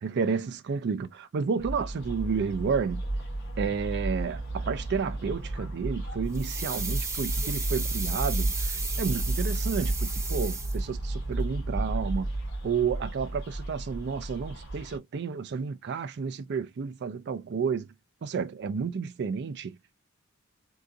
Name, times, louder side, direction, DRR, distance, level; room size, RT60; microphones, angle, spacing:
voice 1, 0.0-3.0 3.6-12.3 12.6-17.9 18.2-19.8, right 5 dB, 55° right, 0.4 m, -31 dB
sound 1, 1.6-15.0, right 2 dB, 55° left, 2.1 m, -32 dB
Sink Turning On, 6.3-11.1 11.4-11.5, right 3 dB, 15° right, 0.8 m, -35 dB
3.8 x 2.4 x 2.4 m
head